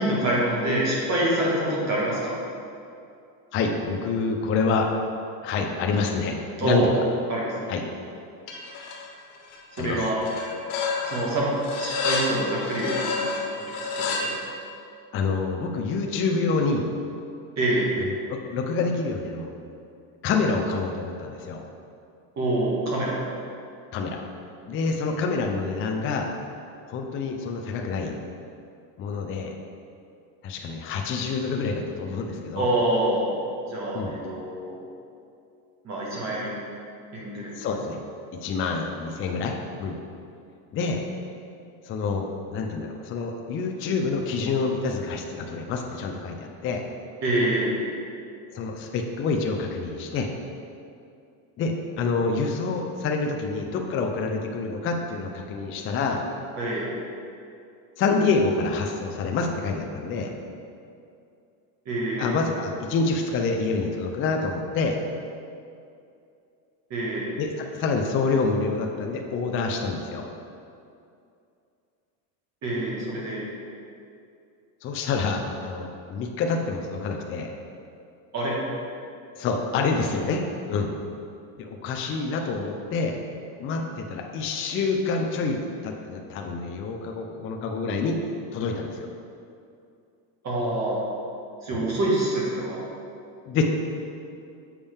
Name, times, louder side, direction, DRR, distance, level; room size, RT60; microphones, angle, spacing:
voice 1, 0.0-2.4 6.6-6.9 7.3-7.5 9.7-10.2 11.0-11.5 11.7-13.3 13.8-14.3 17.6-17.9 22.4-23.2 32.5-33.3 33.7-34.7 35.8-36.5 37.1-37.5 47.2-47.8 56.6-56.9 61.8-62.3 66.9-67.3 72.6-73.4 78.3-78.5 90.4-91.0 91.6-92.8, right 1 dB, 35° right, -5 dB, 1.6 m, -26 dB
voice 2, 3.5-4.9 5.4-6.9 7.7-7.8 9.8-10.1 15.1-16.9 18.0-19.5 20.2-21.6 23.9-24.2 24.6-26.3 26.9-28.2 29.0-29.5 30.4-32.7 33.9-34.1 37.6-38.0 38.3-40.0 40.7-41.1 41.8-46.9 48.5-50.3 51.6-56.2 58.0-60.3 62.2-65.0 67.4-70.3 74.8-77.5 79.3-80.4 80.7-80.9 81.6-83.2 83.6-88.2 88.5-89.1 91.7-91.8 93.5-93.6, left 4 dB, 30° left, 2 dB, 0.4 m, -27 dB
sound 1, 8.5-9.1 9.3-9.9 10.2-14.3, left 4 dB, 70° left, 1.4 m, -30 dB
7.2 x 5.2 x 3.5 m, 2.5 s
supercardioid pair, 130°, 45 cm